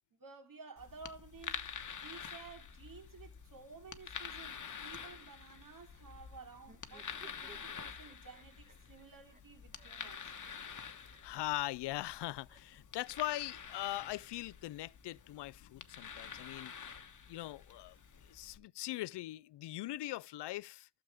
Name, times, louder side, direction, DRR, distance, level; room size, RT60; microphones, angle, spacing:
voice 1, 0.1-1.7 2.0-10.3, right 4 dB, 50° right, 3.0 m, -54 dB
sound 1, 0.8-18.6, left 6 dB, 45° left, 1.2 m, -48 dB
sound 2, 6.6-12.8 13.8-14.9, right 4 dB, 20° right, 1.1 m, -63 dB
voice 2, 11.2-16.7 17.3-18.0 18.2-20.9, left 16 dB, 70° left, 0.5 m, -41 dB
12.5 x 7.1 x 3.5 m
cardioid pair, 70°, 42 cm